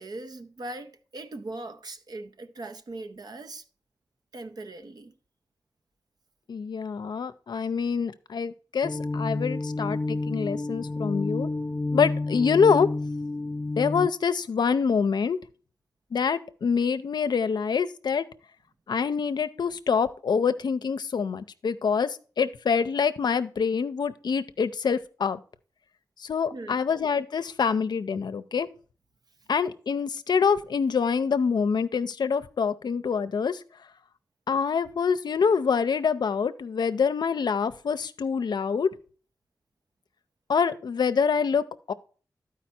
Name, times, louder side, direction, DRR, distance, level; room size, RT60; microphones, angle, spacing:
voice 1, 0.0-3.6 4.3-5.1 26.5-26.9, right 2 dB, 70° right, 0.8 m, -40 dB
voice 2, 6.5-11.5 11.9-12.9 13.8-15.4 16.1-18.3 18.9-25.4 26.2-28.7 29.5-33.6 34.5-38.9 40.5-41.9, left 6 dB, 80° left, 0.5 m, -25 dB
sound 1, 8.8-14.1, left 2 dB, 30° left, 0.4 m, -30 dB
12.0 x 4.9 x 4.3 m
cardioid pair, 55°, 7 cm